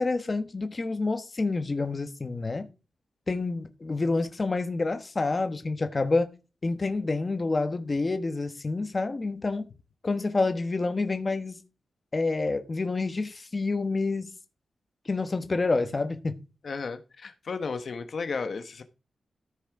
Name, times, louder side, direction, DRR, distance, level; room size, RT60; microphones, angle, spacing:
voice 1, 0.0-2.7 3.3-6.3 6.6-9.7 10.0-11.6 12.1-14.3 15.1-16.4, left 3 dB, 30° left, 1.2 m, -28 dB
voice 2, 16.6-18.8, left 4 dB, 50° left, 1.0 m, -34 dB
14.0 x 6.2 x 4.8 m
wide cardioid pair, 180°, 0 cm